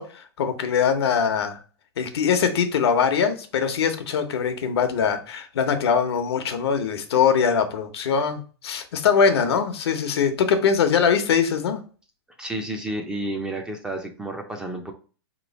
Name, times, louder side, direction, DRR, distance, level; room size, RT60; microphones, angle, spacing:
voice 1, 0.0-1.6 2.0-11.8, left 6 dB, 75° left, 0.8 m, -22 dB
voice 2, 12.4-14.9, right 1 dB, 5° right, 0.4 m, -31 dB
4.0 x 3.0 x 4.0 m
hypercardioid pair, 150°, 14 cm